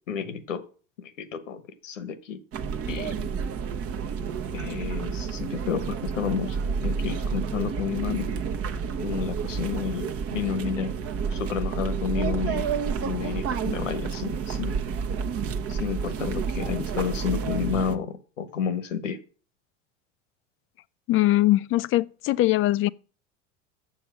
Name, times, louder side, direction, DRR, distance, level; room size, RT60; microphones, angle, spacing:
voice 1, 0.1-0.6 1.0-2.4 2.9-3.2 4.5-8.3 9.0-10.9 11.3-12.7 13.0-14.8 15.7-19.2, left 7 dB, 90° left, 1.2 m, -31 dB
sound 1, 2.5-18.0, right 6 dB, 40° right, 0.9 m, -30 dB
voice 2, 21.1-22.9, left 16 dB, 35° left, 0.4 m, -21 dB
7.3 x 7.2 x 6.0 m
hypercardioid pair, 90°, 37 cm